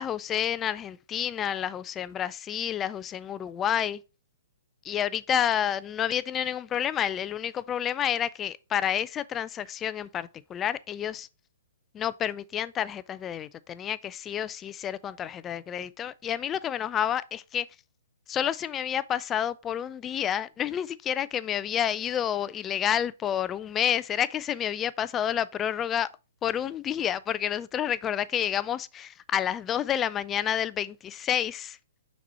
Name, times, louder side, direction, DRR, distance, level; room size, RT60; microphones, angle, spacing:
voice 1, 0.0-4.0 4.8-11.3 11.9-17.7 18.3-26.1 26.4-31.8, left 9 dB, 20° left, 0.3 m, -29 dB
5.9 x 4.2 x 4.3 m
hypercardioid pair, 130°, 0 cm